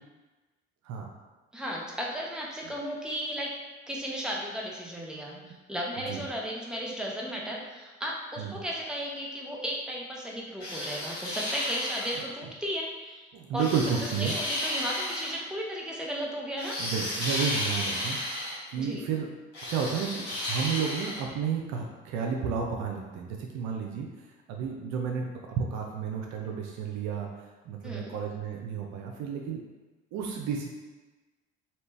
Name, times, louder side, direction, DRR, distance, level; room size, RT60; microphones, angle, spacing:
voice 1, 1.5-3.5 3.9-5.3 5.7-13.3 13.5-13.7 14.2-16.8 18.8-19.0 27.8-28.1, equal, ahead, -3 dB, 0.9 m, -35 dB
sound 1, 10.6-12.2 13.6-15.3 16.6-18.6 19.5-21.2, left 1 dB, 80° left, 1.2 m, -33 dB
voice 2, 13.3-14.3 16.8-18.4 18.7-19.3 19.7-24.1 24.5-27.3 27.6-29.6 30.1-30.7, right 6 dB, 65° right, 1 dB, 0.5 m, -32 dB
3.2 x 2.9 x 3.1 m, 1.2 s
hypercardioid pair, 50°, 30 cm